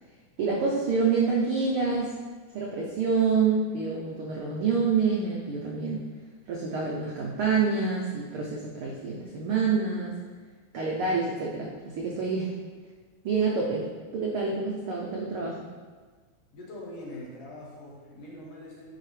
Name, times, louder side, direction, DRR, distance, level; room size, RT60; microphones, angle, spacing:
voice 1, 0.4-2.1 2.5-6.0 6.5-10.1 10.7-12.5 13.2-13.8 14.1-15.7, right 5 dB, 80° right, -2 dB, 1.2 m, -27 dB
voice 2, 16.5-19.0, left 1 dB, 60° left, -4 dB, 2.2 m, -43 dB
8.9 x 4.8 x 3.2 m, 1.4 s
omnidirectional pair, 3.4 m